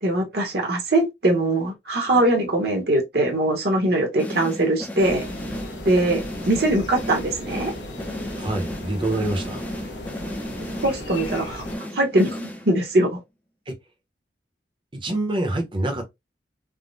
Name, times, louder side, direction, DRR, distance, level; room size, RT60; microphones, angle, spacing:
voice 1, 0.0-5.2 5.8-7.7 10.8-11.6 11.9-13.2, right 1 dB, 55° right, 0.9 m, -22 dB
sound 1, 4.2-13.0, equal, 10° left, 0.5 m, -34 dB
sound 2, 5.0-11.8, left 1 dB, 75° left, 0.8 m, -36 dB
voice 2, 8.4-9.6 13.7-13.8 15.0-16.0, right 2 dB, 25° right, 0.8 m, -26 dB
3.5 x 2.1 x 2.5 m
head